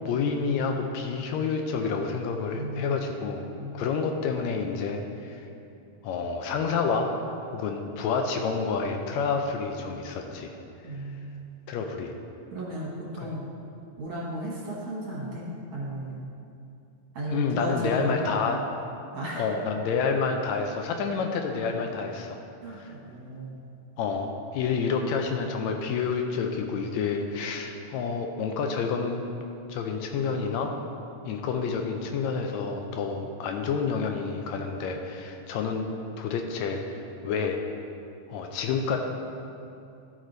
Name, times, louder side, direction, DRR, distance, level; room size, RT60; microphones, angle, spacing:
voice 1, 0.1-3.5 3.7-5.4 6.0-7.1 7.5-10.5 11.7-12.1 13.2-13.3 17.3-18.6 19.4-22.4 22.8-22.9 24.0-29.2 29.7-30.7 31.3-35.8 36.2-37.6 38.3-39.0, left 5 dB, 80° left, 4 dB, 1.8 m, -29 dB
voice 2, 2.5-3.0 3.5-3.9 10.8-11.5 12.5-13.5 14.0-15.4 15.7-16.2 17.1-18.4 19.1-19.5 22.6-23.7, right 1 dB, 55° right, -5 dB, 2.3 m, -34 dB
12.0 x 4.8 x 3.9 m, 2.6 s
omnidirectional pair, 3.3 m